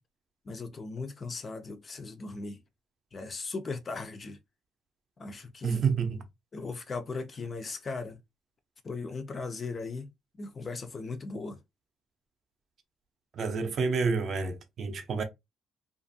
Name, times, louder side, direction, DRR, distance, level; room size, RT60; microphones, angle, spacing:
voice 1, 0.5-2.6 3.1-4.4 5.2-5.8 6.5-8.2 8.8-10.1 10.4-11.6, left 3 dB, 25° left, 0.3 m, -38 dB
voice 2, 5.6-6.2 13.3-15.2, right 5 dB, 40° right, 0.5 m, -29 dB
2.5 x 2.3 x 2.6 m
cardioid pair, 170°, 0 cm